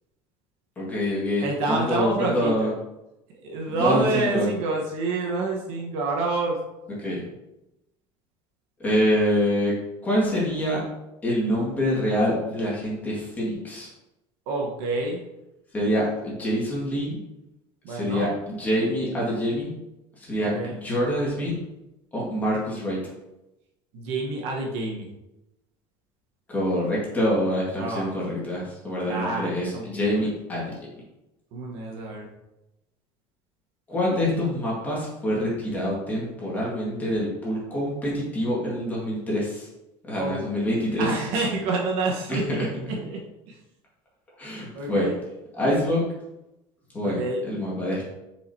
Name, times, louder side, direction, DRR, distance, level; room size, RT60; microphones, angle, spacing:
voice 1, 0.8-2.7 3.7-4.5 7.0-7.2 8.8-9.8 10.0-10.8 11.2-13.9 15.7-17.2 17.9-19.7 20.2-21.5 22.1-23.0 26.5-30.7 33.9-39.7 40.1-41.1 42.3-42.6 44.4-45.1 45.5-46.0 46.9-48.0, equal, 15° left, -6 dB, 2.0 m, -26 dB
voice 2, 1.4-2.7 3.3-6.6 14.5-15.2 17.8-18.4 20.4-20.7 23.9-25.1 27.8-28.1 29.0-30.3 31.5-32.3 40.2-40.4 41.0-43.6 44.7-45.2 47.0-47.4, right 2 dB, 65° right, -1 dB, 1.3 m, -28 dB
7.4 x 4.9 x 2.9 m, 0.94 s
cardioid pair, 175°, 11 cm